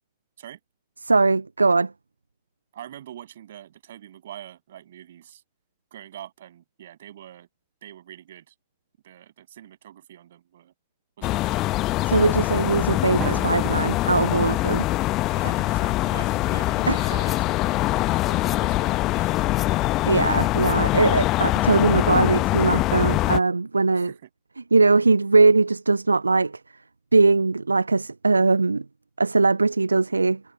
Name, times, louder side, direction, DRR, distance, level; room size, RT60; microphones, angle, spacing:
voice 1, 1.0-1.9 12.1-14.9 16.9-17.0 20.1-24.1 24.7-26.6 27.1-28.8 29.2-30.4, right 3 dB, 80° right, 0.4 m, -20 dB
voice 2, 2.7-5.4 5.9-7.5 7.8-8.5 9.0-10.7 11.2-11.7 15.4-19.5 23.9-24.3, right 11 dB, 60° right, 7.5 m, -44 dB
sound 1, 11.2-23.4, left 18 dB, 40° left, 1.0 m, -23 dB
Drum, 13.2-15.2, right 9 dB, 25° right, 3.9 m, -38 dB
sound 2, 16.9-17.5 17.8-21.7, left 8 dB, 20° left, 3.5 m, -45 dB
figure-of-eight pair, 90°, 0 cm